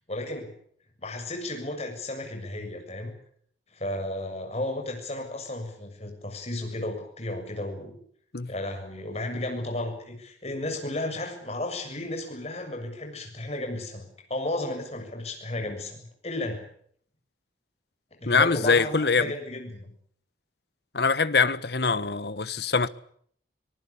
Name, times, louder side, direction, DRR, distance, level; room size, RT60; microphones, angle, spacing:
voice 1, 0.1-0.5 1.0-3.2 3.7-7.9 8.5-16.7 18.2-19.9, left 1 dB, 35° left, 7.1 m, -33 dB
voice 2, 18.2-19.3 20.9-22.9, left 4 dB, 65° left, 1.2 m, -23 dB
25.0 x 20.0 x 8.5 m
head